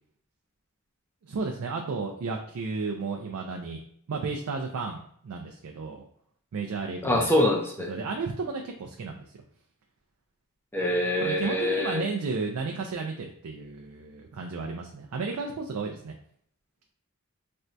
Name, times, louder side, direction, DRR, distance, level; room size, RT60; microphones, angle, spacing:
voice 1, 1.2-3.8 4.1-6.0 6.5-7.3 7.9-9.3 11.2-16.1, right 4 dB, 80° right, 2 dB, 0.4 m, -33 dB
voice 2, 7.0-7.9 10.7-12.0, left 1 dB, 10° left, -1 dB, 0.5 m, -25 dB
4.3 x 2.2 x 2.5 m, 0.65 s
head